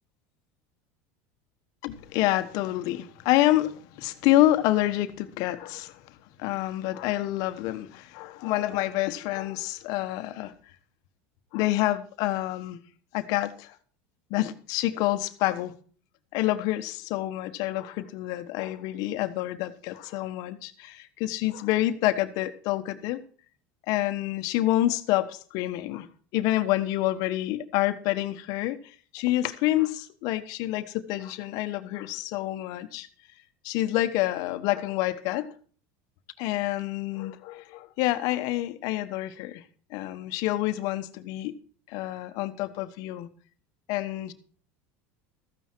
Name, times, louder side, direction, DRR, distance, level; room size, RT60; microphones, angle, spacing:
voice 1, 1.8-6.0 6.4-10.5 11.5-12.8 13.1-13.7 14.3-15.7 16.3-23.2 23.9-26.1 26.3-33.1 33.6-35.5 36.4-39.6 39.9-41.5 41.9-43.3 43.9-44.3, left 15 dB, 60° left, 1.2 m, -27 dB
14.0 x 9.4 x 4.5 m
supercardioid pair, 125°, 7 cm